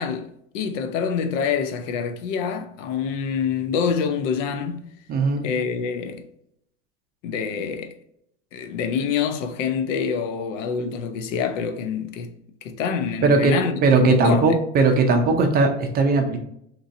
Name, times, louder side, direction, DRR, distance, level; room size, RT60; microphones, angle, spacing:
voice 1, 0.0-4.9 5.4-6.2 7.2-8.0 8.5-12.3 12.6-14.6, left 6 dB, 85° left, 0.6 m, -26 dB
voice 2, 5.1-5.4 13.2-13.6 13.8-16.4, right 3 dB, 25° right, 0.4 m, -18 dB
3.0 x 2.6 x 2.5 m
supercardioid pair, 130°, 37 cm